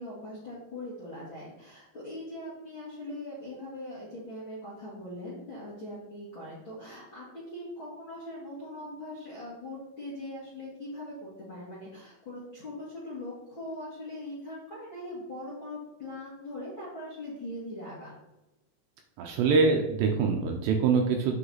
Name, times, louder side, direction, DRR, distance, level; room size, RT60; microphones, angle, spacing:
voice 1, 0.0-18.1, left 1 dB, 45° left, -6 dB, 1.6 m, -41 dB
voice 2, 19.2-21.4, right 4 dB, 75° right, 3 dB, 2.6 m, -24 dB
8.7 x 5.9 x 4.1 m, 0.98 s
omnidirectional pair, 5.4 m